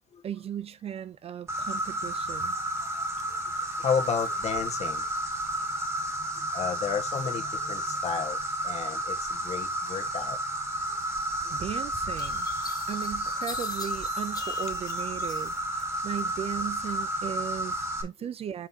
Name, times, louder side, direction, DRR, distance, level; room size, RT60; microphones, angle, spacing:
voice 1, 0.2-2.6 11.5-12.5 12.9-18.7, right 9 dB, 40° right, 0.4 m, -37 dB
Insect, 1.5-18.0, right 1 dB, 20° right, 1.9 m, -32 dB
voice 2, 3.8-5.1 6.5-8.4 8.6-10.4, left 7 dB, 45° left, 1.5 m, -32 dB
sound 1, 11.4-11.5 12.2-15.8 16.2-16.9, left 5 dB, 25° left, 1.0 m, -43 dB
7.6 x 5.0 x 2.8 m
cardioid pair, 135°, 16 cm